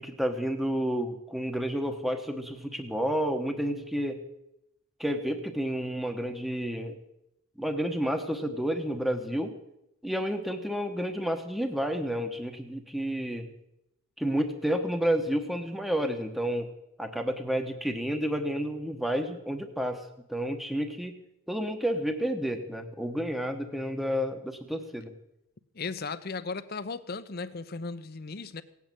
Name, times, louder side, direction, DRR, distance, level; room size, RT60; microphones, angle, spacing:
voice 1, 0.0-4.2 5.0-7.0 7.6-9.5 10.0-13.5 14.2-16.7 17.0-21.2 21.5-25.1, equal, ahead, 5 dB, 1.0 m, -30 dB
voice 2, 25.7-28.6, left 4 dB, 45° left, 14 dB, 0.7 m, -36 dB
17.5 x 8.4 x 9.0 m, 0.85 s
head